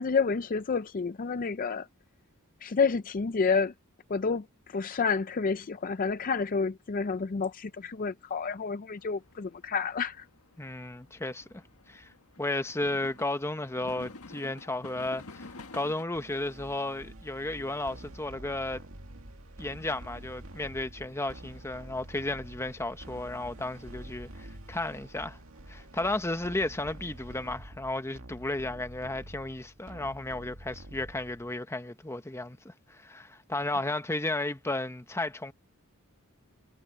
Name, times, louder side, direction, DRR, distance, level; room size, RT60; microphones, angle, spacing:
voice 1, 0.0-1.9 2.6-3.7 4.1-10.3 33.7-33.8, left 5 dB, 40° left, 0.5 m, -29 dB
sound 1, 9.0-16.0, left 3 dB, 80° left, 1.7 m, -50 dB
voice 2, 10.6-11.6 11.9-12.1 12.4-18.8 19.6-25.4 25.7-35.5, left 2 dB, 10° left, 1.0 m, -34 dB
sound 2, 16.1-31.6, right 1 dB, 65° right, 2.3 m, -47 dB
head